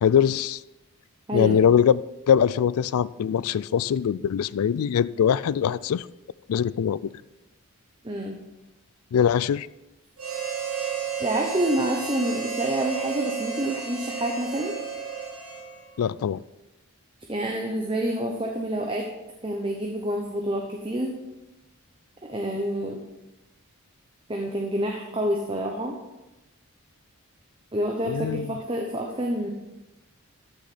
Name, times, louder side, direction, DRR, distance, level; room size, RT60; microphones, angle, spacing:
voice 1, 0.0-0.6 1.3-2.0 2.3-6.1 6.5-7.1 9.1-9.7 16.0-16.4 28.1-28.5, left 8 dB, 80° left, 19 dB, 0.3 m, -22 dB
voice 2, 1.3-1.7 8.0-8.4 11.2-14.7 17.3-19.1 19.4-21.2 22.2-23.0 24.3-25.9 27.7-29.5, right 1 dB, 25° right, 1 dB, 0.8 m, -28 dB
Harmonica, 10.2-16.0, right 6 dB, 80° right, 3.3 m, -32 dB
13.5 x 6.3 x 4.3 m, 1.0 s
head